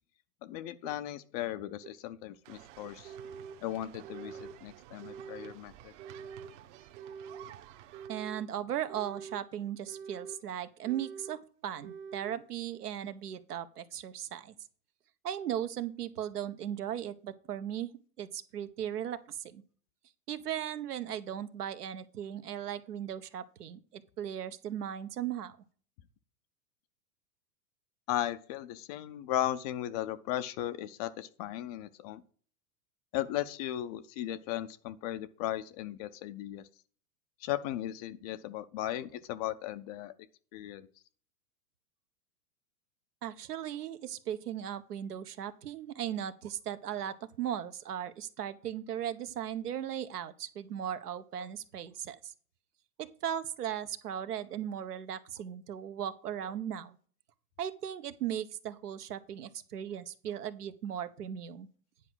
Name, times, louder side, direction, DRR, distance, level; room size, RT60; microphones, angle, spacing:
voice 1, 0.4-3.2 3.6-5.9 28.1-32.2 33.1-36.7 37.4-40.1 40.5-40.9, left 13 dB, 30° left, 13 dB, 0.3 m, -36 dB
sound 1, 0.8-0.9 1.8-1.9 2.8-3.6 4.0-4.6 5.0-5.6 6.0-6.5 7.0-7.5 7.9-8.5 8.9-9.5 9.9-10.4 10.8-11.4 11.8-12.4, right 6 dB, 25° right, 0.8 m, -45 dB
sound 2, 2.4-8.1, right 12 dB, 50° right, 1.0 m, -52 dB
voice 2, 8.1-14.5 15.2-19.6 20.3-25.5 43.2-52.3 53.0-57.0 57.6-61.7, right 10 dB, 85° right, 12 dB, 1.0 m, -37 dB
9.9 x 4.9 x 6.1 m, 0.43 s
hypercardioid pair, 120°, 45 cm